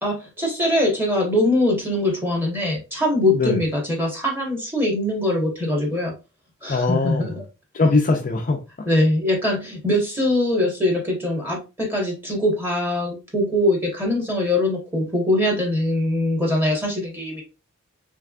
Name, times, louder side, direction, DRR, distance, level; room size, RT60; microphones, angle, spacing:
voice 1, 0.0-6.1 6.6-7.4 8.8-17.4, left 1 dB, 10° right, 1.5 m, -22 dB
voice 2, 6.7-7.3 7.7-8.9, left 3 dB, 40° left, 0.5 m, -21 dB
3.5 x 3.3 x 2.4 m
head